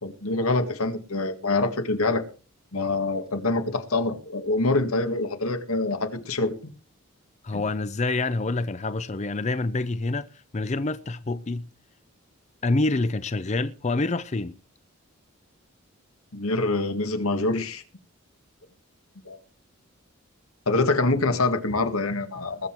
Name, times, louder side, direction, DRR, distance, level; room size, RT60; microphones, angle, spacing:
voice 1, 0.0-2.2 2.7-6.5 7.5-7.6 16.3-17.8 19.3-19.4 20.7-22.7, left 2 dB, 85° left, 1.8 m, -25 dB
voice 2, 7.4-11.7 12.6-14.5, left 2 dB, 30° left, 0.5 m, -27 dB
20.5 x 7.9 x 4.5 m
head